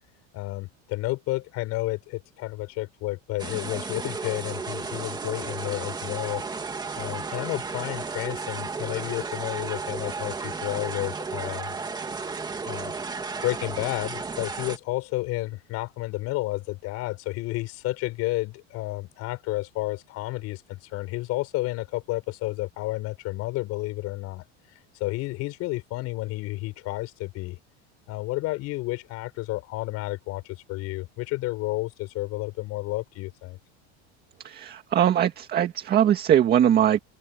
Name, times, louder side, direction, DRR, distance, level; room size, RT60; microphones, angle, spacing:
voice 1, 0.3-6.4 6.9-11.7 12.6-12.9 13.4-24.4 25.0-27.6 28.1-33.6, left 19 dB, 50° left, 6.4 m, -31 dB
sound 1, 3.4-14.8, right 4 dB, 10° right, 2.4 m, -33 dB
voice 2, 34.4-37.0, right 10 dB, 30° right, 2.0 m, -21 dB
cardioid pair, 160°, 33 cm